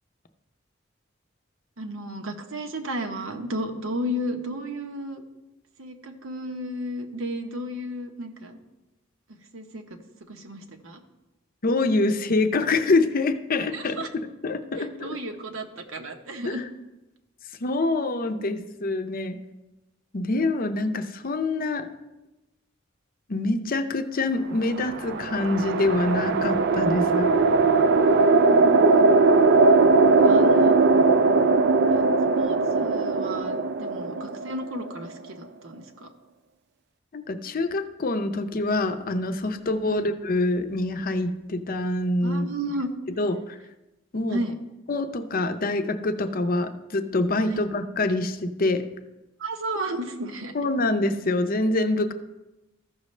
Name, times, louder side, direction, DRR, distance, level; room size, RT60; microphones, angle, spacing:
voice 1, 1.8-5.2 5.8-8.6 9.5-9.8 10.3-11.0 13.7-14.1 14.8-16.6 27.9-29.1 30.2-30.8 31.9-32.0 32.4-36.1 39.8-40.1 42.2-42.9 44.3-44.5 47.5-47.6 49.4-50.5, equal, 85° right, 4 dB, 1.0 m, -33 dB
voice 2, 11.6-14.1 14.4-15.2 16.4-16.6 17.6-19.4 20.1-21.9 23.3-27.3 37.1-42.5 43.1-43.6 44.1-44.4 44.9-48.8 50.5-52.1, left 2 dB, 45° left, 9 dB, 0.6 m, -25 dB
sound 1, 24.7-35.1, right 3 dB, 55° right, 0.4 m, -20 dB
14.0 x 6.3 x 3.2 m, 1.0 s
head